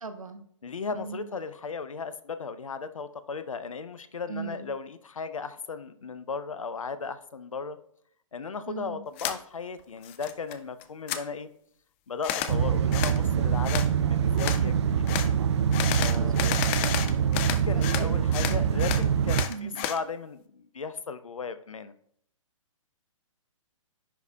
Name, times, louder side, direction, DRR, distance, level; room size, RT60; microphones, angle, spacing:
voice 1, 0.0-0.4 0.9-1.3 4.3-4.7 8.7-9.0 16.2-16.9 17.7-17.9 19.5-19.9, right 5 dB, 80° right, 9 dB, 0.8 m, -38 dB
voice 2, 0.6-7.8 8.3-11.5 12.1-15.2 16.0-16.5 17.3-21.9, left 5 dB, 75° left, 12 dB, 0.6 m, -36 dB
sound 1, 9.2-9.4 9.8-10.5 10.8-11.2 12.2-12.5 12.9-13.2 13.6-13.9 14.4-14.6 15.1-15.3 15.7-18.1 18.3-20.0, left 10 dB, 20° left, 0.4 m, -31 dB
sound 2, 12.5-19.4, right 8 dB, 55° right, 0.4 m, -25 dB
10.0 x 4.1 x 2.3 m, 0.66 s
figure-of-eight pair, 125°, 17 cm